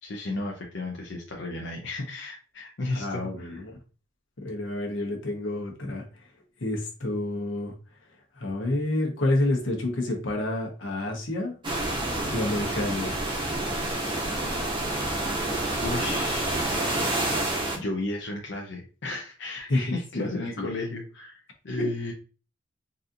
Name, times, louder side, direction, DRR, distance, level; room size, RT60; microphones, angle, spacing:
voice 1, 0.0-3.6 15.8-16.7 17.8-22.1, left 2 dB, 65° left, -1 dB, 0.6 m, -34 dB
voice 2, 2.9-3.7 4.4-6.0 6.6-7.7 8.3-11.5 12.3-13.4 19.7-20.3 20.6-20.7 21.8-21.9, left 1 dB, 85° left, 1 dB, 1.1 m, -29 dB
sound 1, 11.6-17.8, right 1 dB, 25° right, 0.8 m, -28 dB
4.1 x 2.5 x 2.7 m, 0.36 s
head